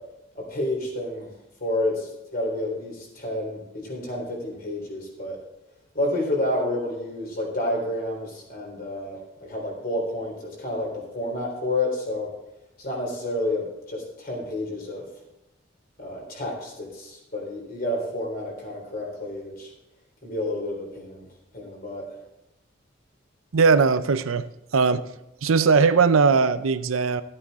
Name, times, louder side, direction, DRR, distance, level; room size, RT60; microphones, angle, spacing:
voice 1, 0.3-1.3 1.6-5.4 5.9-12.3 12.8-15.1 16.0-19.7 20.2-21.3 21.5-22.0, left 1 dB, 45° left, -1 dB, 3.9 m, -30 dB
voice 2, 23.5-24.5 24.7-25.1 25.4-27.2, right 5 dB, 80° right, 13 dB, 0.6 m, -19 dB
13.0 x 8.6 x 4.2 m, 0.90 s
head